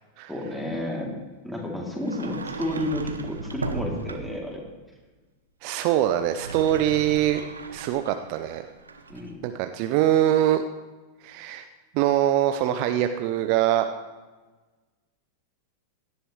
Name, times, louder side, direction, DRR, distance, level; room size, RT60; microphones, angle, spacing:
voice 1, 0.3-1.1 1.4-4.6 9.1-9.4, left 1 dB, 5° left, -2 dB, 3.1 m, -31 dB
Sliding door, 2.0-4.5 6.1-9.3, right 3 dB, 75° right, 0.9 m, -37 dB
voice 2, 5.6-7.4 7.7-8.6 9.4-10.6 11.2-11.7 11.9-13.9, right 12 dB, 45° right, 8 dB, 0.6 m, -23 dB
16.5 x 11.0 x 3.3 m, 1.3 s
figure-of-eight pair, 90°, 0 cm